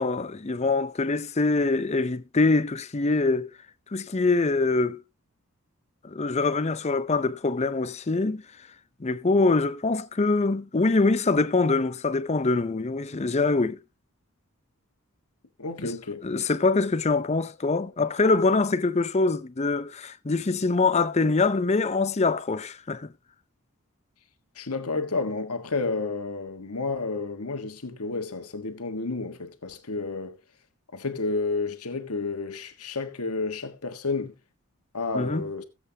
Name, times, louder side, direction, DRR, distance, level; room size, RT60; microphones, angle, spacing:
voice 1, 0.0-3.5 3.9-5.0 6.0-8.4 9.0-13.8 15.8-15.9 16.2-23.1 35.1-35.5, left 3 dB, 30° left, 0.6 m, -24 dB
voice 2, 15.6-16.2 24.5-30.3 30.9-34.3 34.9-35.6, left 3 dB, 85° left, 1.4 m, -31 dB
18.0 x 7.9 x 2.8 m
head